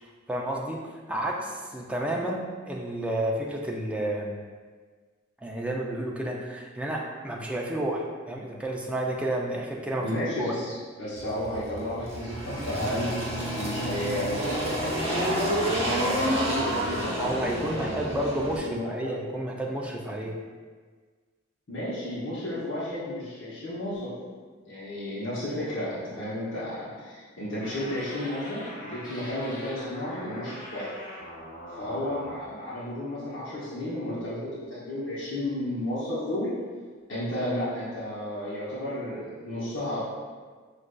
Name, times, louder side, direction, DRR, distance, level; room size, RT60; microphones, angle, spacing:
voice 1, 0.3-4.4 5.4-10.1 10.4-10.6 17.1-20.3, right 1 dB, 5° right, -1 dB, 0.4 m, -31 dB
voice 2, 10.0-13.1 13.5-15.2 16.0-18.2 18.6-18.8 21.7-24.1 24.6-30.9 31.8-36.5 37.1-40.0, left 1 dB, 80° left, -9 dB, 0.9 m, -33 dB
Engine, 11.2-18.6, right 1 dB, 30° right, 0.8 m, -29 dB
sound 1, 27.6-32.6, equal, 45° left, 1.0 m, -42 dB
6.1 x 2.5 x 2.2 m, 1.5 s
head